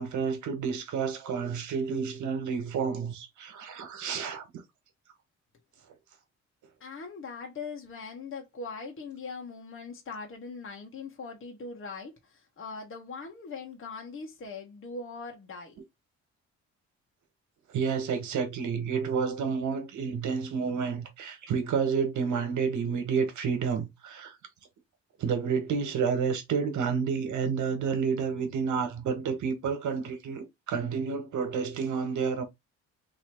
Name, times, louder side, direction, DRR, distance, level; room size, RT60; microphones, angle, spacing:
voice 1, 0.0-4.4 17.7-24.3 25.2-32.4, right 6 dB, 75° right, 1.5 m, -30 dB
voice 2, 6.8-15.8, left 4 dB, 45° left, 1.2 m, -41 dB
3.1 x 2.9 x 4.5 m
cardioid pair, 90°, 30 cm